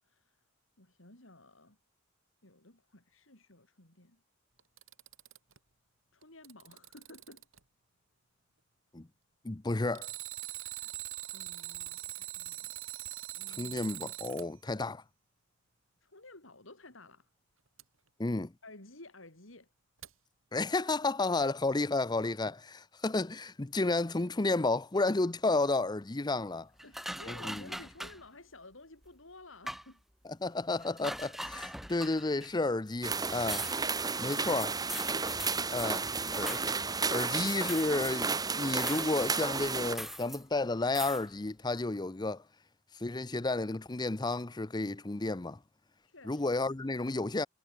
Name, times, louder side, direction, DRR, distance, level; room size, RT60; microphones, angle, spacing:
voice 1, 0.0-0.4 0.8-1.8 2.4-4.2 6.1-7.5 10.5-13.8 16.0-17.3 18.6-19.7 26.8-30.0 46.0-46.5, left 2 dB, 75° left, 5.3 m, -54 dB
Alarm, 4.6-5.6 6.2-7.6 9.9-14.5 17.8-17.9 20.0-20.1, right 15 dB, 85° right, 5.1 m, -42 dB
voice 2, 9.4-10.1 13.6-15.0 18.2-18.5 20.5-26.7 27.3-27.6 30.2-33.7 34.2-34.8 35.7-36.6 37.1-42.4 43.0-45.6 46.3-47.5, left 2 dB, 20° left, 0.7 m, -32 dB
sound 1, 26.8-28.2 29.0-29.1 29.7-29.9 30.8-32.5 32.9-33.0 33.2-38.3 38.5-40.4 40.9-41.2, equal, ahead, 1.8 m, -42 dB
sound 2, 33.0-39.9, right 4 dB, 20° right, 1.3 m, -33 dB
head